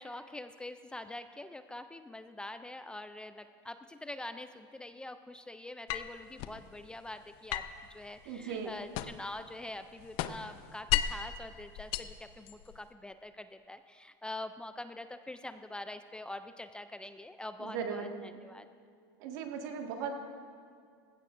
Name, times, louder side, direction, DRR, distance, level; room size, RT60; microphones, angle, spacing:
voice 1, 0.0-18.7, left 1 dB, 10° left, 10 dB, 0.4 m, -45 dB
sound 1, 5.9-6.6 7.5-9.4 9.7-11.3 11.8-12.8, left 11 dB, 55° left, 0.6 m, -35 dB
voice 2, 8.3-8.7 17.6-18.1 19.2-20.1, right 6 dB, 65° right, 3 dB, 1.8 m, -37 dB
18.5 x 16.0 x 2.6 m, 2.2 s
supercardioid pair, 130°, 11 cm